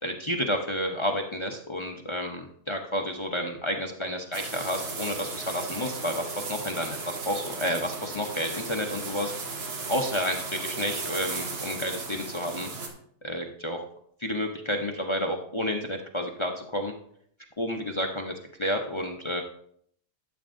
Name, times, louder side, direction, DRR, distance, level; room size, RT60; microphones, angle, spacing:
voice 1, 0.0-9.3 9.9-12.7 13.2-13.8 14.2-16.9 17.6-18.3 18.6-19.4, equal, 40° left, 2 dB, 0.4 m, -30 dB
sound 1, 4.3-12.9, right 4 dB, 85° right, 1.9 m, -36 dB
12.5 x 8.1 x 2.6 m, 0.66 s
omnidirectional pair, 1.6 m